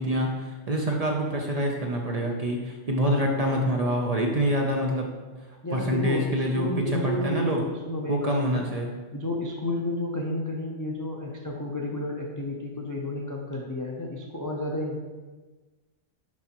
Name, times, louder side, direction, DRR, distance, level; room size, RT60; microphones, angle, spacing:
voice 1, 0.0-5.1 5.7-7.6 8.1-8.9, equal, 45° right, 0 dB, 0.5 m, -26 dB
voice 2, 5.6-8.7 9.1-15.0, left 1 dB, 30° left, -1 dB, 0.3 m, -31 dB
6.1 x 5.5 x 2.9 m, 1.3 s
omnidirectional pair, 1.2 m